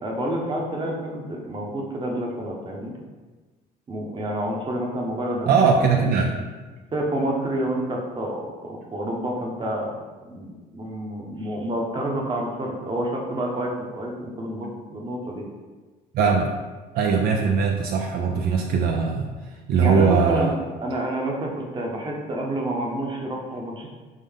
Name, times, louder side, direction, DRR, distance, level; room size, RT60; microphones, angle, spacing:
voice 1, 0.0-2.9 3.9-6.0 6.9-9.9 10.2-15.4 19.8-23.9, right 1 dB, 30° right, -1 dB, 0.9 m, -29 dB
voice 2, 5.5-6.3 16.1-16.5 16.9-19.3 19.7-20.5, right 5 dB, 65° right, 2 dB, 0.4 m, -20 dB
3.8 x 3.7 x 3.6 m, 1.3 s
cardioid pair, 110°, 17 cm